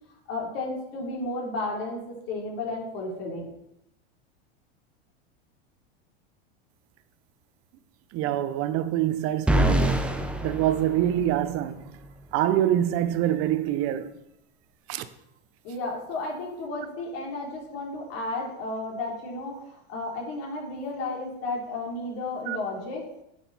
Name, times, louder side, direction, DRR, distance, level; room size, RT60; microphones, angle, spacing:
voice 1, 0.3-3.5 15.6-23.0, left 2 dB, 50° left, 3.5 m, -33 dB
voice 2, 8.1-11.8 12.3-14.1 14.9-15.1 22.5-22.6, right 12 dB, 45° right, 0.8 m, -25 dB
sound 1, 9.5-11.6, right 1 dB, 5° right, 0.7 m, -25 dB
9.1 x 6.4 x 4.2 m
supercardioid pair, 130°, 31 cm